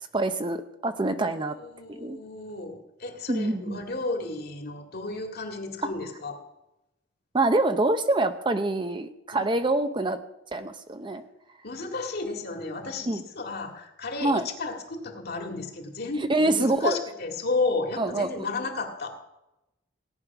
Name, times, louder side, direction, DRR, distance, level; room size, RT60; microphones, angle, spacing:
voice 1, 0.1-1.5 1.9-2.2 3.3-3.8 7.3-10.2 10.5-11.2 13.1-13.2 14.2-14.5 16.3-17.0 18.0-18.4, right 2 dB, 25° right, 9 dB, 0.7 m, -25 dB
voice 2, 1.2-6.4 9.3-9.5 11.6-19.2, left 3 dB, 50° left, 4 dB, 2.2 m, -33 dB
17.0 x 9.7 x 6.0 m, 0.92 s
head